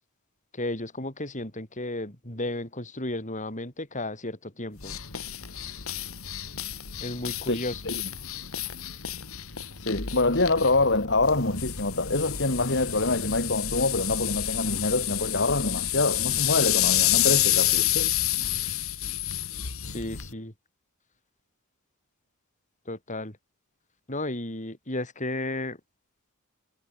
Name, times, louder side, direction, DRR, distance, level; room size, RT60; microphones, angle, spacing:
voice 1, 0.5-5.0 7.0-7.8 19.8-20.5 22.9-23.4 24.1-25.8, left 1 dB, 35° left, 6.3 m, -33 dB
sound 1, 4.8-20.3, left 13 dB, 80° left, 2.3 m, -29 dB
voice 2, 7.5-7.9 9.8-18.1, left 2 dB, 55° left, 3.9 m, -25 dB
head